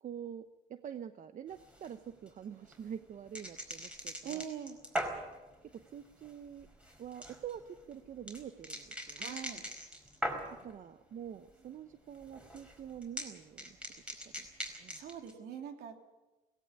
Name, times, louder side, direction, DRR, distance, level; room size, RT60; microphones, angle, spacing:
voice 1, 0.0-4.4 5.7-6.7 7.0-7.6 7.9-9.3 10.6-13.8 14.4-14.5 14.8-15.0, right 9 dB, 50° right, 9 dB, 1.0 m, -46 dB
sound 1, 1.5-10.8 11.1-11.7 11.9-15.3, equal, 5° right, 4.8 m, -42 dB
voice 2, 4.2-4.8 9.2-9.6 15.0-16.0, right 9 dB, 70° right, 5 dB, 3.0 m, -42 dB
18.0 x 17.0 x 9.8 m, 1.1 s
cardioid pair, 110°, 17 cm